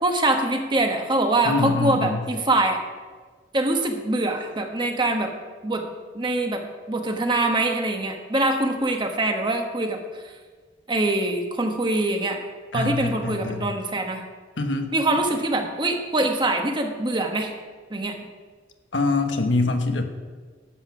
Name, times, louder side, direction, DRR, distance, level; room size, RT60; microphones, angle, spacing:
voice 1, 0.0-2.8 3.5-5.3 5.6-5.8 6.1-6.6 6.9-10.0 10.2-10.3 10.9-12.4 12.7-14.2 14.9-17.5 17.9-18.1, right 2 dB, 25° right, 4 dB, 1.2 m, -24 dB
voice 2, 1.4-2.2 12.7-13.7 14.6-14.9 18.9-20.0, left 3 dB, 75° left, 5 dB, 1.2 m, -24 dB
12.0 x 8.0 x 6.0 m, 1.5 s
head